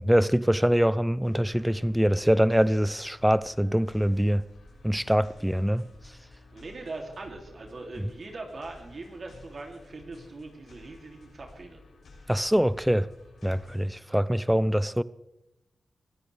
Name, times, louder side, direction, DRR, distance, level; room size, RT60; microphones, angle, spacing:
voice 1, 0.0-4.5 4.8-5.8 8.0-8.1 12.3-13.1 13.4-15.0, equal, 5° right, 0.5 m, -24 dB
sound 1, 1.2-13.9, left 2 dB, 80° left, 7.2 m, -53 dB
voice 2, 6.5-11.8, right 3 dB, 55° right, 2.8 m, -41 dB
22.5 x 15.5 x 3.4 m
cardioid pair, 75°, 0 cm